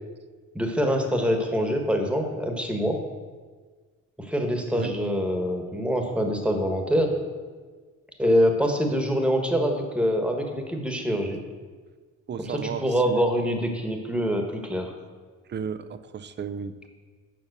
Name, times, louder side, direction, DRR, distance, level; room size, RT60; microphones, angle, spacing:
voice 1, 0.5-3.0 4.2-7.1 8.2-11.4 12.4-14.9, equal, 5° right, 3 dB, 1.4 m, -25 dB
voice 2, 12.3-13.3 15.5-16.8, right 7 dB, 35° right, 12 dB, 0.5 m, -34 dB
7.3 x 5.6 x 6.6 m, 1.5 s
cardioid pair, 90°, 30 cm